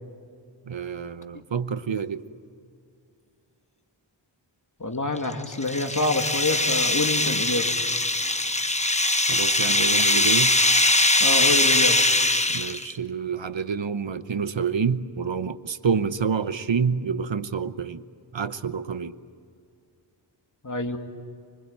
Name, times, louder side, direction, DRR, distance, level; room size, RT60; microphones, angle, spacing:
voice 1, 0.7-2.3 9.3-10.6 12.5-18.0 18.3-19.2, right 6 dB, 70° right, 13 dB, 1.0 m, -28 dB
voice 2, 4.8-7.7 11.2-12.0 20.6-21.0, left 2 dB, 40° left, 5 dB, 2.5 m, -26 dB
sound 1, 5.2-12.9, left 2 dB, 15° left, 1.1 m, -21 dB
25.5 x 24.5 x 9.0 m, 2.5 s
wide cardioid pair, 75°, 46 cm